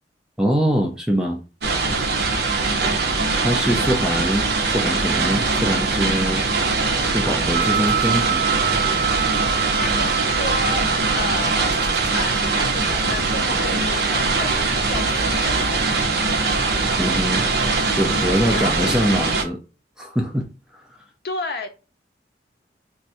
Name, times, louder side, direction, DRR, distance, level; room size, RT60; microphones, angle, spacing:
voice 1, 0.4-1.4 3.4-4.5 4.7-6.4 7.1-8.5 17.0-17.4 17.9-19.6 20.0-20.5, equal, 5° right, 0.4 m, -23 dB
sound 1, 1.6-19.4, right 3 dB, 65° right, 0.6 m, -22 dB
voice 2, 1.8-2.6 9.8-10.9 11.1-16.5 18.5-19.1 21.2-21.7, left 2 dB, 60° left, 0.6 m, -32 dB
sound 2, 7.5-19.5, right 8 dB, 35° left, 1.2 m, -30 dB
2.6 x 2.3 x 4.0 m
head